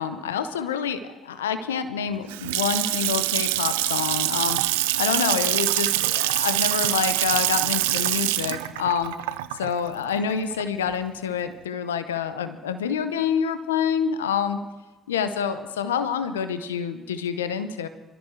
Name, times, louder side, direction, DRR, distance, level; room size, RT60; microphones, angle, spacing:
voice 1, 0.0-9.1 9.6-14.6 15.1-17.9, left 7 dB, 85° left, 11 dB, 0.7 m, -27 dB
Water tap faucet / Sink (filling or washing) / Splash splatter, 2.1-10.9, right 17 dB, 80° right, 0.4 m, -25 dB
25.5 x 13.5 x 3.3 m, 1.1 s
hypercardioid pair, 50°, 0 cm